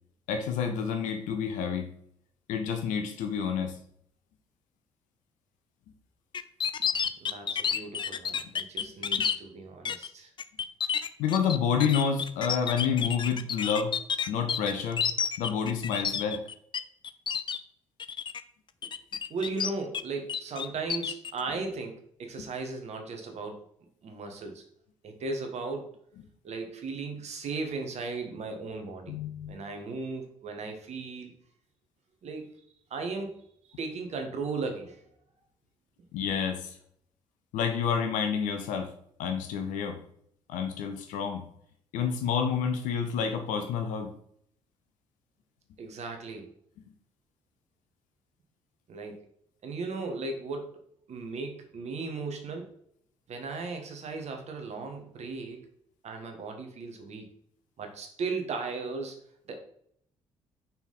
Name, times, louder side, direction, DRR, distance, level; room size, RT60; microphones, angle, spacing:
voice 1, 0.3-1.9 2.5-3.8 9.2-9.3 11.2-13.9 14.3-15.0 15.4-16.4 22.4-22.5 29.1-29.6 36.1-36.7 37.5-38.9 39.2-40.0 40.5-41.4 41.9-44.1, left 7 dB, 65° left, 5 dB, 0.9 m, -29 dB
sound 1, 6.3-9.4 9.9-10.1 10.4-16.8 17.0-17.6 18.0-18.4 18.8-20.0 20.3-21.3, left 7 dB, 35° left, 0.5 m, -30 dB
voice 2, 7.2-10.3 19.3-23.6 24.0-24.6 25.0-25.9 26.4-29.2 29.5-31.4 32.2-32.5 32.9-33.4 33.8-35.0 45.8-46.5 48.9-49.2 49.6-50.8 51.1-52.7 53.3-55.6 56.0-57.3 57.8-59.2 59.5-59.6, right 3 dB, 50° right, 4 dB, 1.4 m, -36 dB
5.6 x 4.5 x 4.0 m, 0.69 s
figure-of-eight pair, 45°, 15 cm